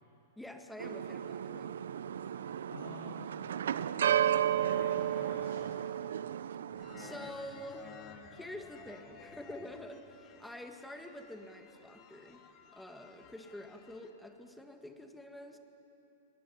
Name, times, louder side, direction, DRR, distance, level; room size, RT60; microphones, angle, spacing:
voice 1, 0.4-1.8 7.0-8.0 8.3-12.4 12.7-15.6, left 1 dB, 5° left, 4 dB, 1.7 m, -47 dB
sound 1, 0.8-7.3, right 10 dB, 85° right, 0.7 m, -33 dB
voice 2, 2.1-3.3 4.0-6.1, left 3 dB, 90° left, -5 dB, 7.0 m, -51 dB
sound 2, 6.7-14.1, left 7 dB, 35° left, 2.1 m, -54 dB
21.0 x 20.5 x 9.8 m, 3.0 s
hypercardioid pair, 140°, 0 cm